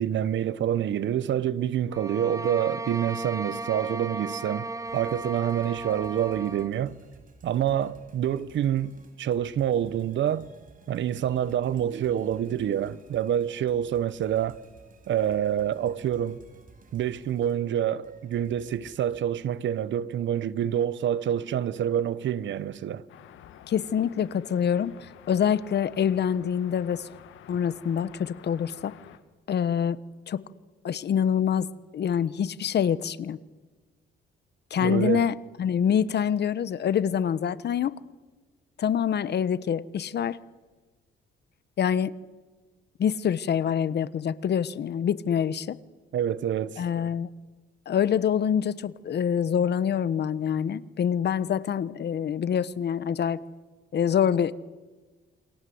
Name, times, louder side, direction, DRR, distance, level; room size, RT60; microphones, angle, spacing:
voice 1, 0.0-7.0 7.4-8.9 9.2-10.5 10.9-14.6 15.1-16.4 16.9-23.0 34.8-35.3 46.1-46.8, right 10 dB, 70° right, 1.2 m, -27 dB
sound 1, 1.9-6.8, right 2 dB, 15° right, 1.1 m, -35 dB
sound 2, 4.9-19.2, right 3 dB, 45° right, 5.4 m, -55 dB
sound 3, 23.1-29.2, left 10 dB, 80° left, 2.0 m, -50 dB
voice 2, 23.7-27.1 27.5-28.9 29.5-30.0 30.3-30.4 30.8-31.7 31.9-33.4 34.7-38.0 38.8-40.4 41.8-42.1 43.0-45.8 46.8-47.3 47.9-53.4 53.9-54.5, left 8 dB, 55° left, 1.2 m, -26 dB
28.5 x 24.5 x 8.0 m
cardioid pair, 90°, 20 cm